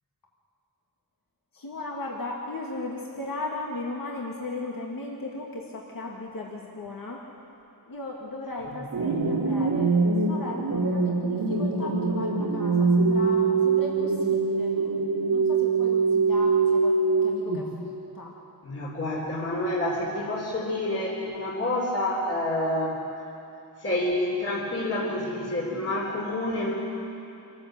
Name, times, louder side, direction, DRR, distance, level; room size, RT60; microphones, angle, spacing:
voice 1, 1.5-7.2 7.9-16.9 17.2-18.3, left 2 dB, 55° left, -3 dB, 2.4 m, -37 dB
sound 1, 8.9-17.9, right 4 dB, 85° right, 2.5 m, -24 dB
voice 2, 18.6-23.0 23.8-26.7, left 1 dB, 35° left, -4 dB, 3.6 m, -28 dB
26.5 x 13.5 x 7.8 m, 2.7 s
wide cardioid pair, 115°, 39 cm